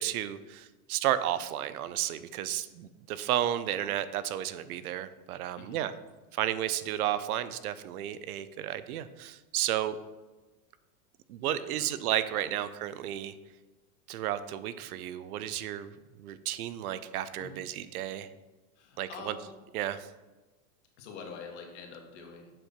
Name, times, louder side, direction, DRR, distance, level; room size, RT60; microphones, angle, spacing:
voice 1, 0.0-5.9 6.3-10.0 11.3-13.3 14.1-15.9 16.2-18.3 19.0-19.4 19.7-20.1, right 12 dB, 75° right, 14 dB, 0.6 m, -32 dB
voice 2, 11.5-11.9 15.5-15.8 17.4-17.6 18.8-19.5 21.0-22.6, left 5 dB, 50° left, 2 dB, 1.5 m, -46 dB
7.5 x 4.5 x 5.1 m, 1.2 s
supercardioid pair, 175°, 45 cm